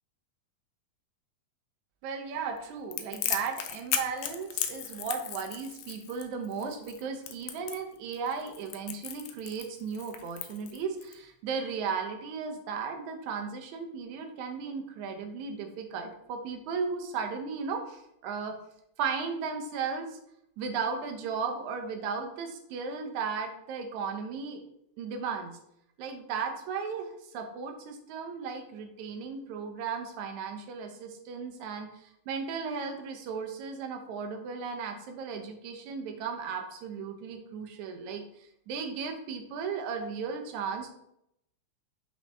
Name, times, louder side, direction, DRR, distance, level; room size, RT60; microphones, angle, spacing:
voice 1, 2.0-18.6 19.0-20.2 20.6-24.6 25.0-25.6 26.0-38.2 38.7-40.9, right 5 dB, 80° right, 4 dB, 2.1 m, -35 dB
Crackle, 2.9-11.1, left 10 dB, 75° left, 1.7 m, -36 dB
5.6 x 5.4 x 3.3 m, 0.76 s
omnidirectional pair, 3.4 m